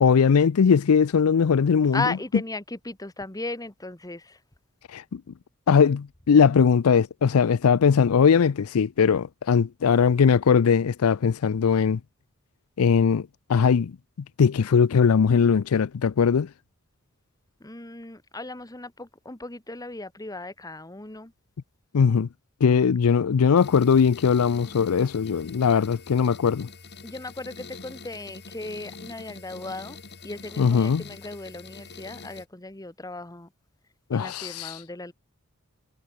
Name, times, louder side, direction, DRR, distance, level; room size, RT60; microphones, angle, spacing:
voice 1, 0.0-2.2 4.9-5.2 5.7-12.0 12.8-13.9 14.4-16.5 21.9-22.3 22.6-26.7 30.6-31.1 34.1-34.8, left 6 dB, 85° left, 0.5 m, -20 dB
voice 2, 1.9-4.4 17.6-21.3 27.0-30.0 30.2-33.5 34.1-35.1, left 2 dB, 15° left, 1.7 m, -36 dB
sound 1, 23.6-32.5, left 4 dB, 50° left, 3.9 m, -44 dB
head